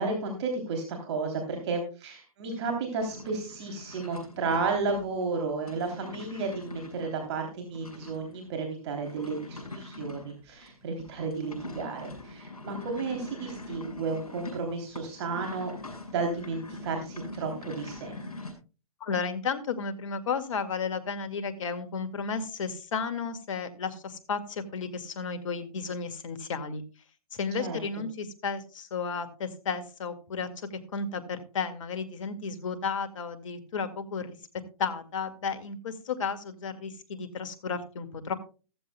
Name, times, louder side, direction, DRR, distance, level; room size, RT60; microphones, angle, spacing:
voice 1, 0.0-15.7 16.1-18.2 27.6-27.8, right 4 dB, 50° right, 3 dB, 3.2 m, -32 dB
sound 1, 3.0-18.5, left 2 dB, 85° left, 6.4 m, -43 dB
voice 2, 19.0-26.8 27.3-34.4 34.8-38.3, left 5 dB, 60° left, 10 dB, 2.0 m, -33 dB
14.5 x 14.5 x 2.2 m, 0.34 s
hypercardioid pair, 125°, 18 cm